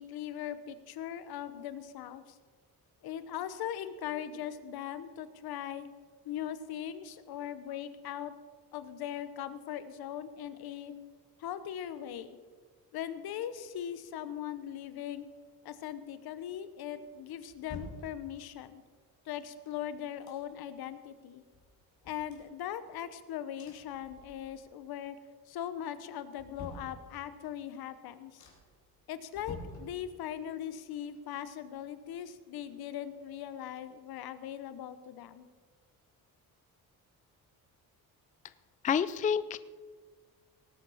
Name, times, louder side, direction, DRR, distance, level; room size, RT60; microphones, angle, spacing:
voice 1, 0.0-2.4 3.0-5.9 6.2-8.3 8.7-10.9 11.4-12.4 12.9-15.3 15.6-18.8 19.2-21.4 22.0-25.2 25.5-28.4 29.1-35.5, left 10 dB, 80° left, 13 dB, 1.0 m, -40 dB
sound 1, 16.9-18.7 19.4-20.8 21.2-21.3 21.5-23.2 23.6-24.8 25.1-25.6 26.0-27.5 27.9-28.0 28.4-28.9 29.3-30.5 30.8-32.6 32.9-33.0, left 3 dB, 50° left, 3.5 m, -50 dB
voice 2, 38.8-39.6, left 7 dB, 20° left, 15 dB, 0.4 m, -28 dB
18.5 x 8.4 x 5.6 m, 1.5 s
cardioid pair, 120°, 37 cm